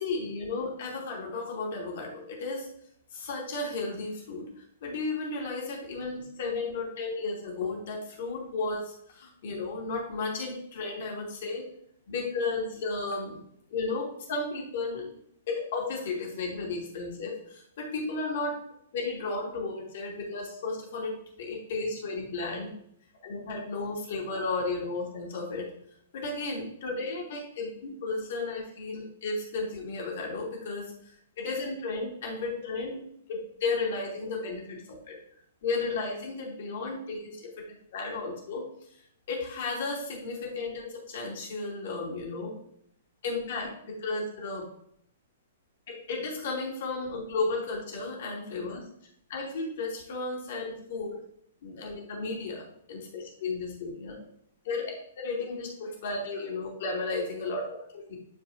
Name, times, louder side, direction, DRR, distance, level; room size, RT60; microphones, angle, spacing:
voice 1, 0.0-2.7 3.1-11.6 12.1-13.4 13.7-15.1 15.5-18.5 18.9-22.7 23.2-25.7 26.1-33.0 33.3-35.1 35.6-37.6 37.9-38.6 39.3-42.5 43.2-44.7 45.9-48.8 49.3-51.2 51.6-52.6 52.9-54.1 54.6-54.9 55.2-58.2, left 3 dB, 50° left, -2 dB, 2.9 m, -34 dB
12.0 x 4.8 x 2.8 m, 0.71 s
figure-of-eight pair, 115°, 0 cm